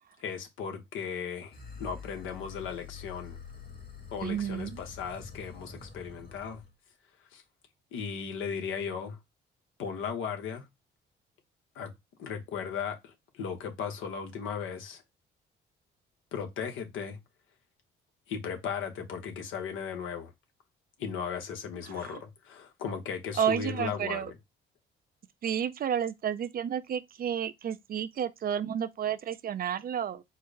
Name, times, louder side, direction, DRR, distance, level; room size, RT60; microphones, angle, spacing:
voice 1, 0.2-3.4 4.1-6.6 7.3-7.4 7.9-9.2 9.8-10.7 11.7-11.9 12.2-15.0 16.3-17.2 18.3-20.3 21.0-24.3, left 6 dB, 80° left, 1.0 m, -36 dB
sound 1, 1.5-6.7, left 6 dB, 50° left, 1.8 m, -46 dB
voice 2, 4.2-4.8 22.0-22.2 23.4-24.3 25.4-30.2, right 9 dB, 50° right, 0.5 m, -31 dB
4.5 x 2.1 x 4.7 m
cardioid pair, 90°, 20 cm